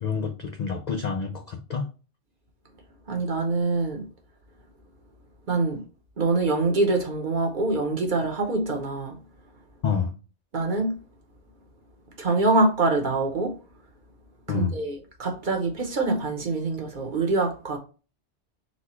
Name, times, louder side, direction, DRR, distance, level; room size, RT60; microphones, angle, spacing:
voice 1, 0.0-1.9 9.8-10.1 14.5-14.8, left 6 dB, 65° left, 0.4 m, -28 dB
voice 2, 3.1-4.1 5.5-5.8 6.2-9.2 10.5-11.0 12.2-13.6 14.5-17.8, right 3 dB, 45° right, 0.9 m, -25 dB
4.2 x 2.3 x 4.2 m
omnidirectional pair, 1.2 m